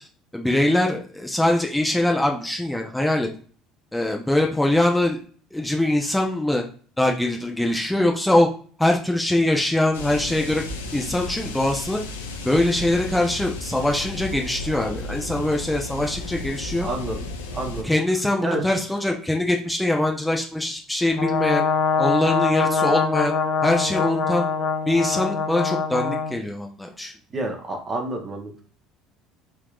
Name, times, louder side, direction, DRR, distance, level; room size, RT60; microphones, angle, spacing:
voice 1, 0.3-3.3 3.9-5.2 5.5-6.6 7.0-8.5 8.8-10.6 10.9-12.0 12.4-16.9 17.8-21.6 22.0-23.3 23.6-24.5 24.9-27.1, left 1 dB, 5° left, 1 dB, 0.6 m, -22 dB
sound 1, 9.9-17.8, left 2 dB, 90° left, 0.5 m, -33 dB
voice 2, 16.8-17.2 17.5-17.9 18.4-18.6 27.3-28.6, right 2 dB, 35° right, 3 dB, 0.9 m, -28 dB
Brass instrument, 21.2-26.3, left 5 dB, 45° left, 0.8 m, -23 dB
3.5 x 3.0 x 2.4 m, 0.42 s
hypercardioid pair, 70°, 0 cm